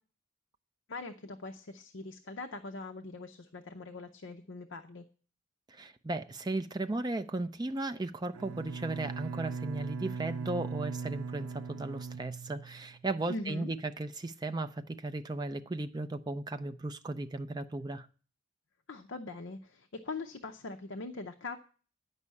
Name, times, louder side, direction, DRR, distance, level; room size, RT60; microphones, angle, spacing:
voice 1, 0.9-5.0 13.3-13.7 18.9-21.6, left 3 dB, 60° left, 0.6 m, -42 dB
voice 2, 5.7-18.1, right 2 dB, 20° right, 0.4 m, -36 dB
Bowed string instrument, 8.3-13.1, right 5 dB, 85° right, 0.6 m, -39 dB
9.8 x 5.5 x 8.2 m
head